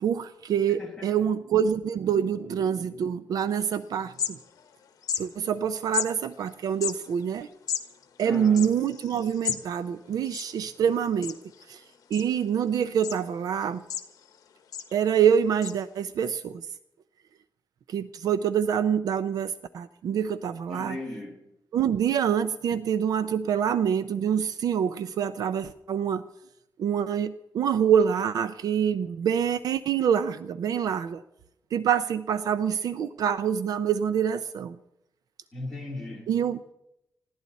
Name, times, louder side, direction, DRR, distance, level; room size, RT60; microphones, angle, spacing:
voice 1, 0.0-4.4 5.2-7.5 8.2-11.4 11.7-11.8 12.1-13.8 14.9-16.6 17.9-21.0 21.7-26.2 26.8-31.2 31.7-34.8 36.3-36.7, right 8 dB, 60° right, 0.5 m, -26 dB
sound 1, 3.6-3.7 4.0-4.7 5.0-5.2 5.9-6.1 6.7-9.6 9.9-10.0 10.2-10.9 11.2-11.6 12.1-12.6 13.0-13.2 13.6-14.4 14.7-14.9 15.6-15.7, left 8 dB, 50° left, 1.3 m, -32 dB
voice 2, 8.2-8.7 20.7-21.4 35.5-36.3, left 2 dB, 5° left, 3.3 m, -37 dB
20.5 x 15.5 x 4.2 m
wide cardioid pair, 175°, 7 cm